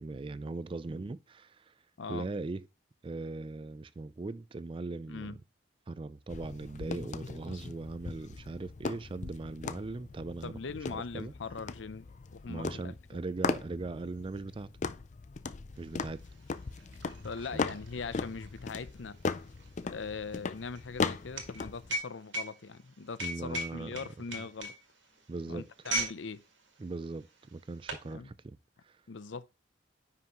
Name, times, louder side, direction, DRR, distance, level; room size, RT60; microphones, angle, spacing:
voice 1, 0.0-1.7 2.1-2.7 3.0-5.4 5.9-10.5 10.9-11.3 12.5-14.7 15.8-16.2 17.5-17.7 23.2-23.9 24.4-24.5 25.3-25.7 26.8-28.6 28.8-29.0, right 3 dB, 30° right, 0.3 m, -39 dB
sound 1, 6.3-21.9, left 4 dB, 40° left, 0.4 m, -38 dB
voice 2, 10.4-12.1 12.3-12.9 17.2-19.2 19.8-24.7 25.5-26.4 28.1-28.3 29.1-29.5, left 4 dB, 80° left, 0.6 m, -41 dB
sound 2, 15.9-16.0 16.2-26.2 26.5-26.8 27.4-28.1, right 1 dB, 80° right, 1.9 m, -38 dB
9.5 x 5.7 x 3.0 m
head